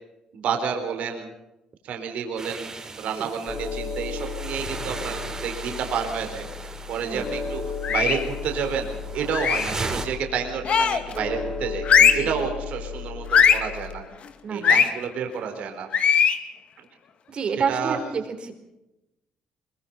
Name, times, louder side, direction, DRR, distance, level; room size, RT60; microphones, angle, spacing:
voice 1, 0.3-1.3 1.8-7.6 7.9-11.9 12.1-14.0 14.5-15.9 17.7-18.0, right 6 dB, 70° right, 5 dB, 4.1 m, -30 dB
sound 1, 2.4-10.1, right 3 dB, 25° right, 4.0 m, -37 dB
sound 2, 3.5-14.0, left 5 dB, 25° left, 6.7 m, -35 dB
sound 3, 7.8-8.3 9.3-9.8 10.6-11.1 11.8-12.3 13.3-13.7 14.6-14.9 15.9-16.4, left 7 dB, 55° left, 2.1 m, -19 dB
voice 2, 17.3-18.5, right 6 dB, 45° right, 7 dB, 4.3 m, -29 dB
23.0 x 22.0 x 5.5 m, 0.93 s
cardioid pair, 90°, 2 cm